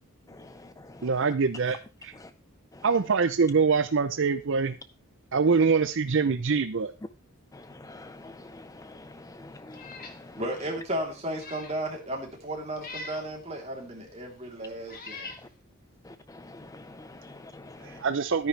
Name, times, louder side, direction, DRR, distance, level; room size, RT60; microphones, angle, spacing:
voice 1, 1.0-1.8 2.0-2.1 2.8-4.7 5.3-6.9 17.8-18.5, right 5 dB, 60° right, 10 dB, 0.6 m, -24 dB
voice 2, 7.8-9.0 9.4-9.8 16.5-18.0, left 2 dB, 15° left, 11 dB, 0.5 m, -46 dB
Meow, 9.7-10.2 10.6-10.7 11.2-11.8 12.8-13.3 14.2-14.3 14.8-15.4, left 3 dB, 40° left, 2.4 m, -43 dB
voice 3, 10.4-15.3, right 1 dB, 30° right, 0 dB, 3.4 m, -34 dB
13.0 x 9.8 x 3.3 m, 0.29 s
head